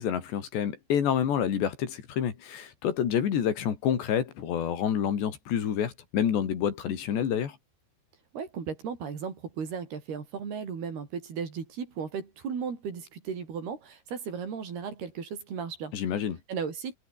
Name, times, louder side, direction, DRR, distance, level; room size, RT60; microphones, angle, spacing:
voice 1, 0.0-7.6 15.9-16.4, left 9 dB, 80° left, 5.2 m, -28 dB
voice 2, 8.3-15.9 16.5-17.0, right 6 dB, 65° right, 6.3 m, -35 dB
omnidirectional pair, 4.9 m